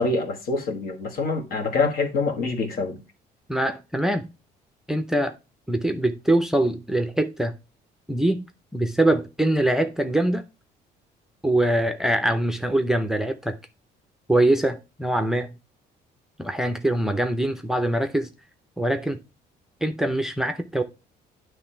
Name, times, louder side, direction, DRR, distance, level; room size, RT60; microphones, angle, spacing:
voice 1, 0.0-3.0, left 3 dB, 60° left, 1.6 m, -25 dB
voice 2, 3.5-4.2 4.9-5.3 5.7-7.5 8.1-8.4 8.7-10.4 11.4-13.6 14.3-15.6 16.4-18.3 18.8-19.2 19.8-20.8, right 1 dB, 5° right, 0.6 m, -23 dB
9.7 x 3.3 x 4.3 m
cardioid pair, 110°, 17 cm